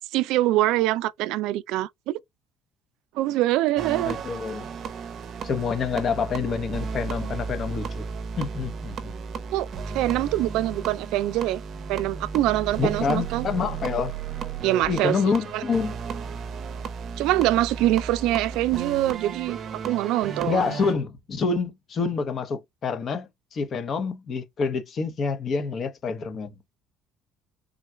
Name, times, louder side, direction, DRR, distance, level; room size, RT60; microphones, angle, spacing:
voice 1, 0.1-2.2 3.2-4.2 9.5-9.7 9.9-11.6 11.9-13.5 14.6-15.2 15.5-15.6 17.2-19.6 19.8-20.7, right 15 dB, 75° right, 0.3 m, -24 dB
sound 1, 3.8-20.9, right 6 dB, 40° right, 0.6 m, -34 dB
voice 2, 4.0-4.7 5.4-8.0 8.4-9.1 12.8-14.1 14.9-15.9 20.4-26.5, left 5 dB, 35° left, 0.8 m, -27 dB
3.7 x 2.3 x 4.3 m
cardioid pair, 145°, 0 cm